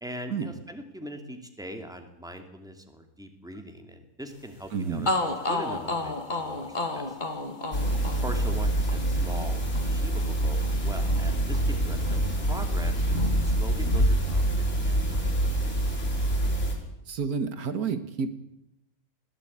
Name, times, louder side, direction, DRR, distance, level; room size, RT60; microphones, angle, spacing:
voice 1, 0.0-5.1 5.5-7.2 8.2-9.6 9.9-15.7, equal, ahead, 6 dB, 2.3 m, -41 dB
sound 1, 4.6-4.7 5.1-12.9 13.2-14.3, left 2 dB, 30° left, 1.8 m, -33 dB
voice 2, 4.7-5.1 17.1-18.3, right 5 dB, 80° right, 11 dB, 1.7 m, -30 dB
sound 2, 7.7-16.7, right 1 dB, 50° left, 5.5 m, -26 dB
21.0 x 14.5 x 8.6 m, 0.86 s
omnidirectional pair, 1.6 m